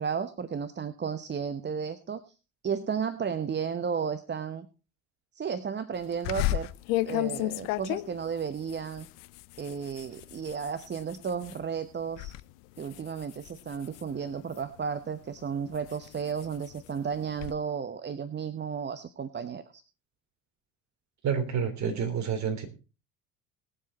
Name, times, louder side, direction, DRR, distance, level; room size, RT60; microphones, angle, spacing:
voice 1, 0.0-2.2 2.6-4.7 5.3-6.7 7.0-9.1 9.6-12.3 12.8-19.8, right 6 dB, 30° right, 11 dB, 1.0 m, -33 dB
sound 1, 6.2-11.6 12.0-12.4 12.8-14.8 15.3-17.5, left 17 dB, 70° left, 0.7 m, -34 dB
voice 2, 21.2-22.7, right 7 dB, 45° right, 6 dB, 3.3 m, -29 dB
19.0 x 7.6 x 4.2 m, 0.33 s
hypercardioid pair, 60°, 38 cm